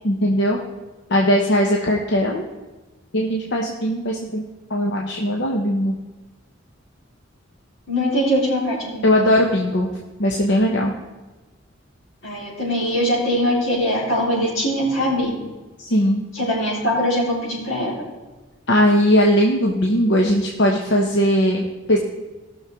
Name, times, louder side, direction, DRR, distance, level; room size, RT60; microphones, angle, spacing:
voice 1, 0.0-0.6 1.1-2.4 3.1-4.4 4.7-6.0 9.0-9.9 10.2-10.9 15.8-16.2 18.7-22.0, equal, 60° left, -1 dB, 0.9 m, -19 dB
voice 2, 7.9-9.1 12.2-15.3 16.3-18.0, equal, 90° left, -5 dB, 3.9 m, -22 dB
17.5 x 6.4 x 3.6 m, 1.2 s
head